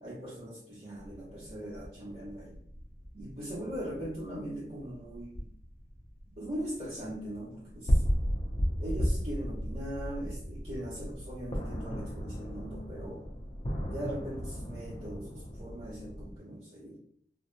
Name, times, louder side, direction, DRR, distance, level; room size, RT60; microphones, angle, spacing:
voice 1, 0.0-2.6 3.1-5.4 6.4-8.0 8.8-13.2 13.8-17.0, right 1 dB, 50° right, -11 dB, 1.0 m, -40 dB
sound 1, 1.0-16.4, equal, 30° left, 0.4 m, -35 dB
2.7 x 2.0 x 2.5 m, 0.64 s
head